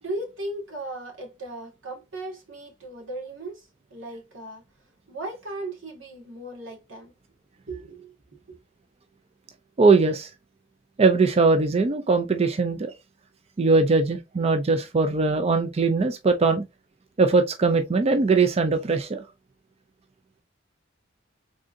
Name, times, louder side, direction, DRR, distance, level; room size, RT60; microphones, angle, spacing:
voice 1, 0.0-4.6 5.1-7.1 7.7-8.1, right 2 dB, 90° right, 1.8 m, -36 dB
voice 2, 9.8-10.3 11.0-12.9 13.6-16.6 17.2-19.2, right 4 dB, 30° right, 0.4 m, -21 dB
3.7 x 3.7 x 2.5 m
head